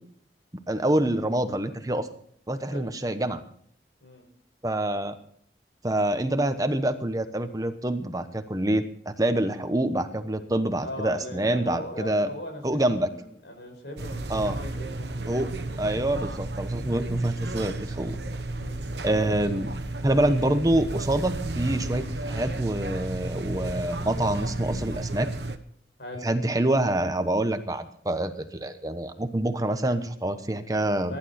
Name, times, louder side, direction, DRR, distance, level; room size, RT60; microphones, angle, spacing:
voice 1, 0.7-2.1 2.5-3.4 4.6-5.2 5.8-12.3 12.6-13.1 14.3-14.6 15.3-15.5 15.8-18.2 19.0-19.7 20.0-25.3 26.2-31.1, right 1 dB, 20° right, 9 dB, 1.1 m, -26 dB
voice 2, 10.8-15.4 18.5-18.8 26.0-26.3 31.0-31.2, left 1 dB, 85° left, 4 dB, 5.6 m, -39 dB
sound 1, 14.0-25.6, right 2 dB, 75° right, 1.2 m, -33 dB
22.0 x 11.5 x 4.4 m, 0.62 s
head